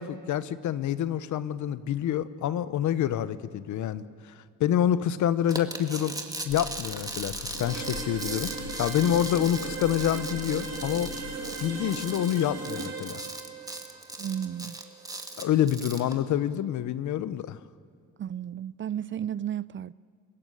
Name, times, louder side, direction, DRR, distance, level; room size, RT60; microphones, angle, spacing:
voice 1, 0.0-6.2 6.4-8.5 8.8-11.1 11.6-13.2 15.4-17.6, left 10 dB, 75° left, 1.0 m, -27 dB
sound 1, 5.5-16.1, right 2 dB, 10° right, 2.3 m, -39 dB
sound 2, 6.5-11.8, left 6 dB, 55° left, 3.1 m, -44 dB
sound 3, 7.5-15.4, right 4 dB, 60° right, 6.2 m, -38 dB
voice 2, 14.2-14.8 18.2-19.9, right 9 dB, 40° right, 0.5 m, -33 dB
29.0 x 15.5 x 9.1 m
cardioid pair, 90°, 30 cm